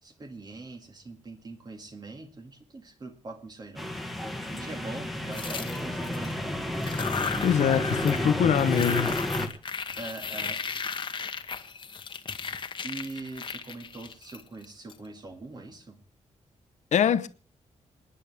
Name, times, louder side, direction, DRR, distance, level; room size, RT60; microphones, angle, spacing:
voice 1, 0.0-4.0 4.4-6.5 10.0-10.6 12.8-16.0, right 3 dB, 35° right, 2.2 m, -42 dB
sound 1, 3.8-9.5, left 1 dB, ahead, 1.5 m, -31 dB
sound 2, 5.3-6.3 6.7-8.3 8.5-14.9, left 6 dB, 40° left, 1.2 m, -35 dB
voice 2, 7.4-9.2 16.9-17.3, left 8 dB, 75° left, 0.9 m, -23 dB
27.0 x 10.0 x 3.5 m
wide cardioid pair, 145°, 12 cm